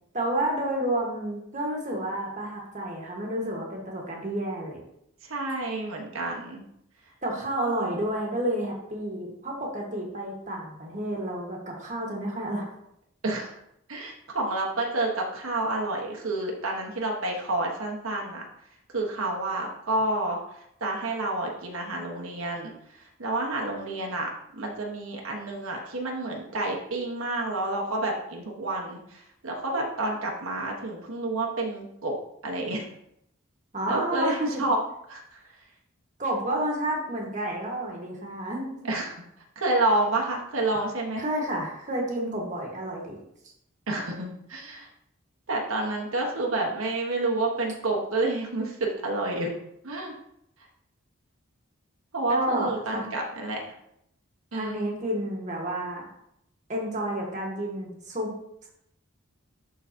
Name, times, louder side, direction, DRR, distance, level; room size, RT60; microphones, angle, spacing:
voice 1, 0.1-4.8 7.2-12.7 33.7-34.6 36.2-38.9 41.2-43.2 52.3-53.0 54.5-56.0 56.7-58.3 58.6-58.7, right 1 dB, 35° right, -1 dB, 1.3 m, -30 dB
voice 2, 5.2-6.6 13.2-13.5 13.9-18.4 18.9-32.1 32.4-32.9 33.9-34.8 35.1-35.5 38.9-39.2 39.6-41.2 43.9-44.9 45.5-49.5 49.8-50.1 52.1-53.6 54.5-54.8, right 2 dB, 85° right, -1 dB, 1.2 m, -29 dB
11.5 x 3.9 x 2.7 m, 0.76 s
head